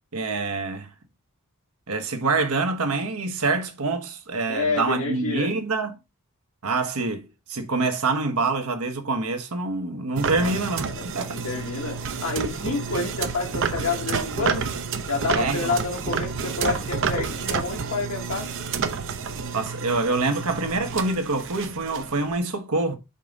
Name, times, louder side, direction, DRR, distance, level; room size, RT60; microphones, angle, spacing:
voice 1, 0.1-0.9 1.9-5.9 6.6-11.4 15.3-15.8 19.5-23.0, right 3 dB, 85° right, 1.3 m, -26 dB
voice 2, 4.5-5.5 10.3-10.5 10.9-14.7 15.1-18.5, left 3 dB, 70° left, 1.5 m, -29 dB
sound 1, 10.2-22.4, right 5 dB, 60° right, 0.8 m, -30 dB
5.3 x 3.9 x 5.2 m
head